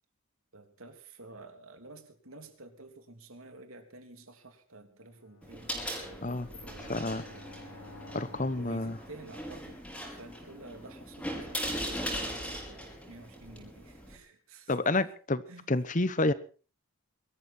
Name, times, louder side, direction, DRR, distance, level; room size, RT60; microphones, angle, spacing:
voice 1, 0.5-7.4 8.5-9.8 10.1-15.0 15.5-15.7, right 2 dB, 85° right, 6 dB, 3.2 m, -51 dB
Bowed string instrument, 5.0-9.7, left 2 dB, 80° left, 5.3 m, -53 dB
sound 1, 5.4-14.2, equal, 5° left, 4.8 m, -39 dB
voice 2, 6.9-7.2 8.1-9.0 14.7-15.4 15.7-16.3, left 2 dB, 35° left, 15 dB, 1.0 m, -29 dB
22.5 x 13.5 x 4.4 m, 0.38 s
head